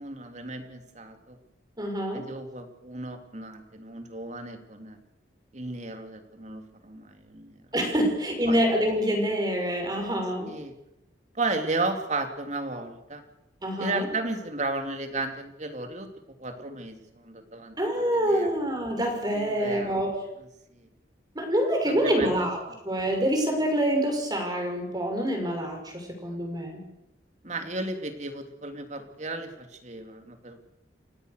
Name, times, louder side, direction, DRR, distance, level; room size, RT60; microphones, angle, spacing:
voice 1, 0.0-1.4 2.1-5.0 5.5-7.7 8.5-8.6 10.4-10.7 11.3-13.2 13.8-17.8 18.1-18.5 19.3-20.1 20.7-20.9 21.8-22.8 27.4-30.6, right 2 dB, 40° right, 6 dB, 3.0 m, -34 dB
voice 2, 1.8-2.3 7.7-10.5 13.6-14.1 17.8-20.2 21.3-22.6 22.8-26.8, equal, 20° right, 3 dB, 5.9 m, -26 dB
29.5 x 16.0 x 6.6 m, 0.86 s
head